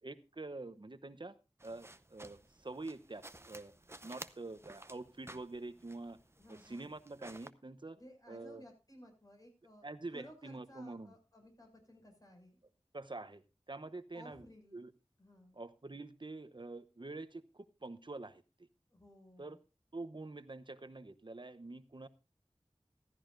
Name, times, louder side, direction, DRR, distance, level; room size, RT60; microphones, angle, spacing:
voice 1, 0.0-1.3 1.6-3.7 4.0-6.2 6.5-8.0 8.3-8.6 9.8-11.1 12.9-14.5 14.7-14.9 15.5-18.7 19.4-19.6 19.9-22.1, right 2 dB, 50° right, 12 dB, 0.9 m, -46 dB
sound 1, 1.6-7.5, right 1 dB, 25° right, 0.7 m, -54 dB
voice 2, 6.4-6.9 8.0-12.6 14.1-14.8 15.2-15.5 18.9-19.6, equal, 35° left, 2 dB, 6.2 m, -57 dB
15.0 x 14.0 x 2.6 m, 0.31 s
wide cardioid pair, 55°, 11 cm